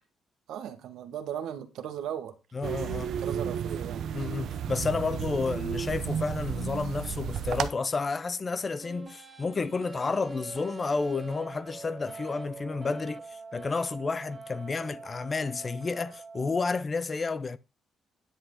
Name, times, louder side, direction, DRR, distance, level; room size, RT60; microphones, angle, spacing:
voice 1, 0.5-2.3 3.0-4.1, right 9 dB, 85° right, 1.7 m, -37 dB
voice 2, 2.5-3.1 4.1-17.6, left 4 dB, 30° left, 0.7 m, -31 dB
sound 1, 2.6-7.7, right 8 dB, 70° right, 0.8 m, -32 dB
sound 2, 8.8-16.8, right 4 dB, 25° right, 1.6 m, -44 dB
10.0 x 7.9 x 3.8 m
cardioid pair, 120°, 0 cm